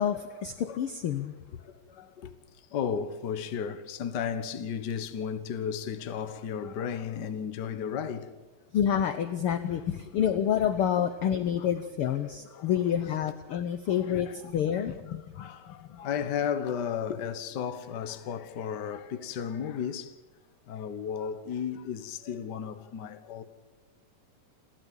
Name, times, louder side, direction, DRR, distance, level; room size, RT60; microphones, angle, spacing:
voice 1, 0.0-1.3 8.7-16.0, left 9 dB, 75° left, 1.2 m, -28 dB
voice 2, 1.6-8.3 10.6-10.7 11.6-11.7 12.1-13.1 13.5-14.4 14.8-14.9 15.3-20.2 20.6-23.4, left 7 dB, 60° left, 1.1 m, -34 dB
29.0 x 12.0 x 8.9 m
omnidirectional pair, 3.7 m